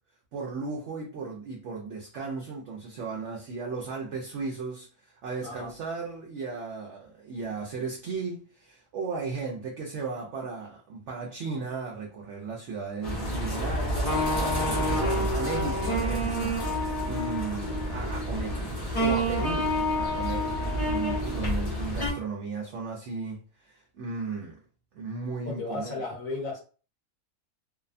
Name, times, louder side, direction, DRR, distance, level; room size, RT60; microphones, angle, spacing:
voice 1, 0.3-18.6 18.9-20.6 20.8-24.6 24.9-25.9, right 4 dB, 65° right, 0.7 m, -36 dB
sound 1, 13.0-22.1, equal, 35° left, 0.6 m, -28 dB
voice 2, 25.4-26.6, left 3 dB, 65° left, 1.2 m, -34 dB
2.7 x 2.1 x 2.5 m
omnidirectional pair, 1.6 m